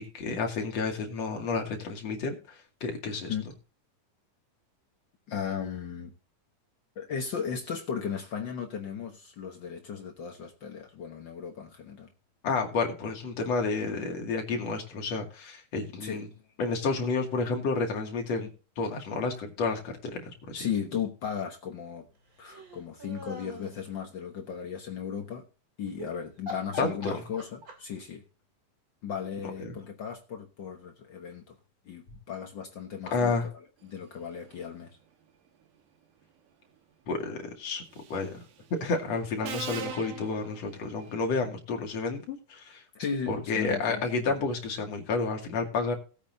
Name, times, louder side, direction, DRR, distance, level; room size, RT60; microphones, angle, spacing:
voice 1, 0.0-2.3 2.8-3.3 12.4-16.3 16.6-18.5 18.8-20.6 26.8-27.2 29.6-29.7 33.1-33.5 37.1-37.8 38.1-38.4 38.8-42.8 43.3-46.0, left 4 dB, 50° left, 3.3 m, -30 dB
voice 2, 5.3-6.1 7.0-12.1 16.0-16.2 20.5-22.1 22.4-25.4 25.8-28.2 29.0-31.6 31.8-33.5 33.8-35.0 42.9-44.3, left 7 dB, 85° left, 1.0 m, -36 dB
sound 1, 22.4-23.8 25.9-26.1 26.5-28.0, left 1 dB, 30° right, 2.8 m, -42 dB
Subway metro underground, 38.0-38.3 39.4-41.1, right 7 dB, 70° right, 2.9 m, -40 dB
18.5 x 8.7 x 2.7 m
omnidirectional pair, 3.9 m